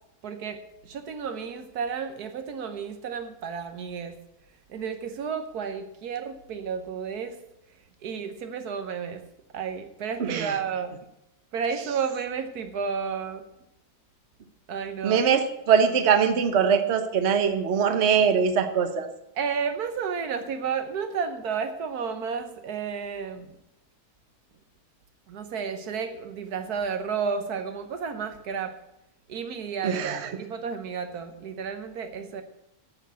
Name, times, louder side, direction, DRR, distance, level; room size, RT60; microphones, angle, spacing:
voice 1, 0.2-4.2 4.7-7.4 8.0-9.3 9.5-11.0 11.5-13.4 14.7-15.2 19.4-23.5 25.3-28.8 29.3-32.4, right 6 dB, 80° right, 8 dB, 1.5 m, -32 dB
voice 2, 10.2-10.5 15.0-19.1 29.8-30.3, right 7 dB, 50° right, 8 dB, 1.2 m, -22 dB
9.3 x 7.1 x 8.1 m, 0.83 s
omnidirectional pair, 1.6 m